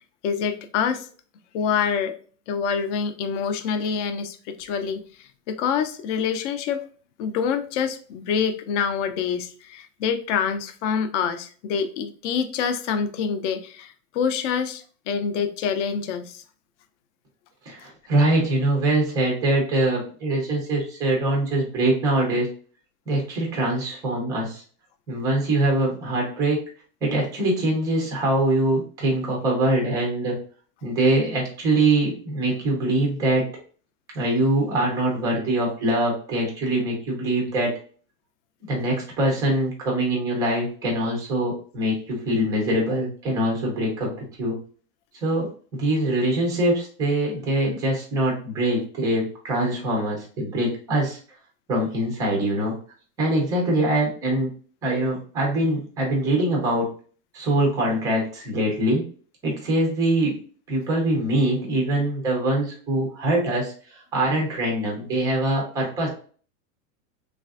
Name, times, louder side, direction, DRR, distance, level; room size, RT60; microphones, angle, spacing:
voice 1, 0.2-1.1 1.5-2.1 2.5-5.0 5.5-6.8 7.2-16.4, left 6 dB, 50° left, 0.5 m, -26 dB
voice 2, 17.7-22.5 23.1-24.6 25.1-26.6 27.0-30.4 30.8-33.4 34.1-37.7 38.7-44.6 45.2-51.2 51.7-52.7 53.2-54.5 54.8-56.9 57.3-59.0 59.4-60.4 60.7-66.1, right 1 dB, 10° right, 0.3 m, -23 dB
3.2 x 2.4 x 2.3 m
supercardioid pair, 140°, 47 cm